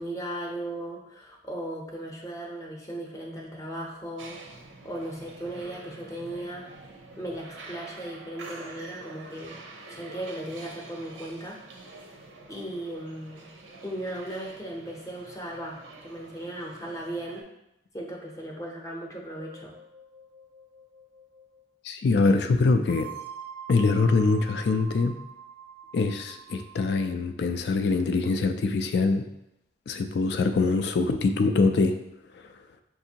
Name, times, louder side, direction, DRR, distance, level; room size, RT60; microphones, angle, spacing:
voice 1, 0.0-4.4 4.8-6.7 7.2-9.6 9.9-11.6 12.5-13.5 13.8-17.4 17.9-19.8, right 1 dB, 15° left, -1 dB, 0.6 m, -37 dB
sound 1, 4.2-17.4, right 3 dB, 90° right, 0.7 m, -47 dB
sound 2, 19.4-21.7 22.9-27.1, right 7 dB, 30° right, 0.4 m, -45 dB
voice 2, 21.8-23.1 23.7-25.1 25.9-29.2 29.9-32.0 32.3-32.4, left 3 dB, 60° left, 7 dB, 0.3 m, -24 dB
5.8 x 2.6 x 2.8 m, 0.85 s
head